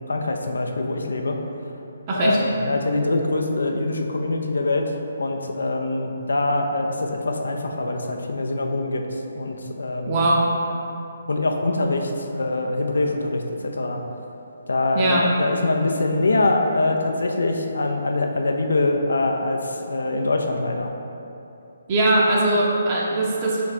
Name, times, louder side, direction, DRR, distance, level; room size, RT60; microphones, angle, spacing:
voice 1, 0.1-1.4 2.2-4.9 5.2-9.0 9.3-10.3 11.3-14.0 14.7-20.9, left 2 dB, 75° left, 3 dB, 0.4 m, -24 dB
voice 2, 10.1-10.4 14.9-15.3 21.9-23.6, right 2 dB, 30° right, -4 dB, 0.5 m, -20 dB
3.3 x 3.2 x 4.0 m, 2.8 s
figure-of-eight pair, 140°, 0 cm